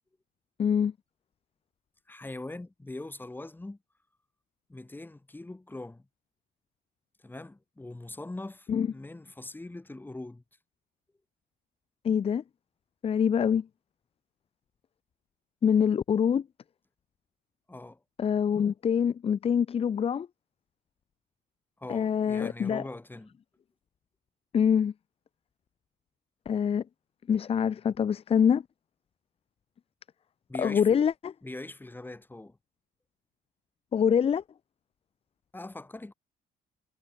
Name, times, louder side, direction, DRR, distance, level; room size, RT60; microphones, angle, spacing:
voice 1, 0.6-0.9 8.7-8.9 12.0-12.4 13.0-13.7 15.6-16.4 18.2-20.3 21.9-22.8 24.5-24.9 26.5-26.8 27.3-28.6 30.6-31.1 33.9-34.4, left 7 dB, 35° left, 0.9 m, -25 dB
voice 2, 2.1-3.8 4.7-6.1 7.2-10.4 17.7-18.0 21.8-23.4 30.5-31.0 31.4-32.6 35.5-36.1, left 2 dB, 10° left, 5.8 m, -42 dB
cardioid pair, 110°, 17 cm